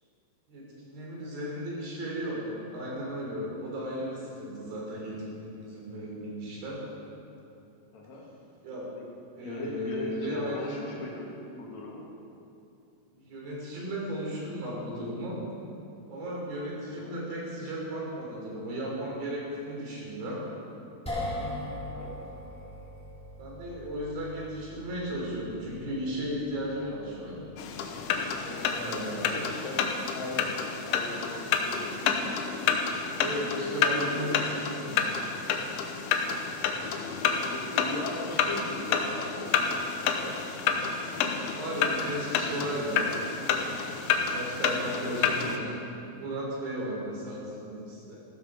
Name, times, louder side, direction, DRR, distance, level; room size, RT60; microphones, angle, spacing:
voice 1, 0.5-6.8 8.6-8.9 9.3-10.9 13.1-15.4 16.1-20.4 23.4-27.4 28.4-29.5 33.2-35.0 41.5-43.1 44.1-45.7 46.1-48.2, equal, 50° right, -4 dB, 5.0 m, -35 dB
voice 2, 7.9-8.2 9.0-9.1 9.4-12.0 16.9-17.1 21.8-22.1 29.2-32.1 33.3-33.8 34.1-34.2 37.5-40.3 45.1-45.2, left 2 dB, 50° left, -3 dB, 2.3 m, -39 dB
sound 1, 21.0-33.4, left 1 dB, ahead, 1.3 m, -43 dB
sound 2, 27.6-45.6, left 6 dB, 80° left, 3.1 m, -29 dB
15.0 x 12.5 x 5.0 m, 2.7 s
omnidirectional pair, 5.7 m